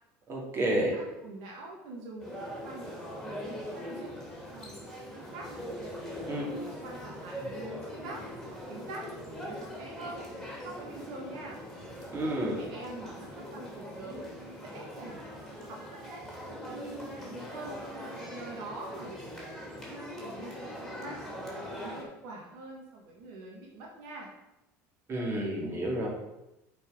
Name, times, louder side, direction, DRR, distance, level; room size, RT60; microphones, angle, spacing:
voice 1, 0.3-0.9 6.3-6.4 12.1-12.6 25.1-26.1, right 1 dB, 35° right, -3 dB, 2.9 m, -30 dB
voice 2, 0.9-3.4 3.7-4.1 4.5-5.5 6.1-8.2 8.7-9.0 9.3-10.3 10.6-11.6 12.6-15.2 15.7-16.2 16.7-17.7 18.3-19.2 19.6-21.2 21.7-24.3, right 2 dB, 75° right, -1 dB, 1.7 m, -45 dB
sound 1, 2.2-22.0, equal, ahead, 2.9 m, -41 dB
8.2 x 4.6 x 5.2 m, 0.91 s
supercardioid pair, 110°, 7 cm